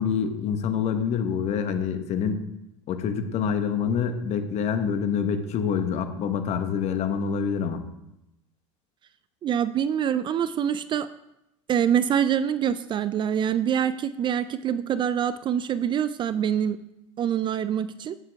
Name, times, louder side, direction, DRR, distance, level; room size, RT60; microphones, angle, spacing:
voice 1, 0.0-2.4 2.9-7.8, left 7 dB, 45° left, 8 dB, 1.1 m, -26 dB
voice 2, 9.4-11.1 11.7-16.8 17.2-18.2, right 9 dB, 30° right, 15 dB, 0.4 m, -25 dB
8.6 x 7.3 x 3.5 m, 0.89 s
hypercardioid pair, 100°, 16 cm